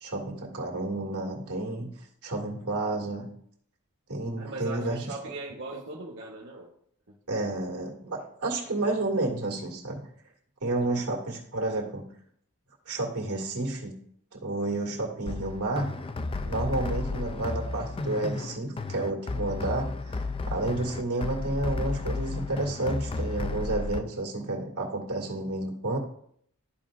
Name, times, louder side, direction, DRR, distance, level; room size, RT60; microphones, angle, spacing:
voice 1, 0.0-1.9 2.2-3.3 4.1-5.3 7.3-10.1 10.6-12.0 12.9-13.9 14.3-15.9 16.4-20.2 20.5-26.0, right 2 dB, 85° right, -2 dB, 2.1 m, -31 dB
voice 2, 4.4-6.7 10.8-11.1, right 3 dB, 55° right, -3 dB, 1.1 m, -39 dB
sound 1, 15.3-24.0, left 3 dB, 25° left, 0.3 m, -33 dB
13.0 x 5.0 x 2.5 m, 0.66 s
head